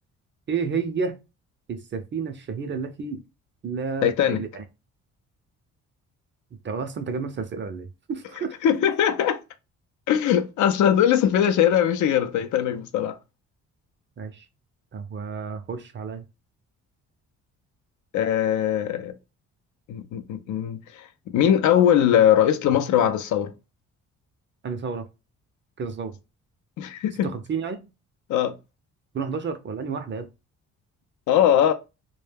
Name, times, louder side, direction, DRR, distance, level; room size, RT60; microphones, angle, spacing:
voice 1, 0.5-1.1 1.7-3.2 3.6-4.6 6.6-8.5 14.2-14.4 14.9-16.3 24.6-25.1 25.8-26.2 27.2-27.8 29.1-30.3, right 5 dB, 40° right, 0.5 m, -30 dB
voice 2, 4.0-4.4 8.6-9.4 10.1-13.2 18.1-19.1 19.9-23.5 26.8-27.3 28.3-28.5 31.3-31.7, left 10 dB, 75° left, 0.5 m, -21 dB
2.2 x 2.2 x 3.3 m
cardioid pair, 90°, 30 cm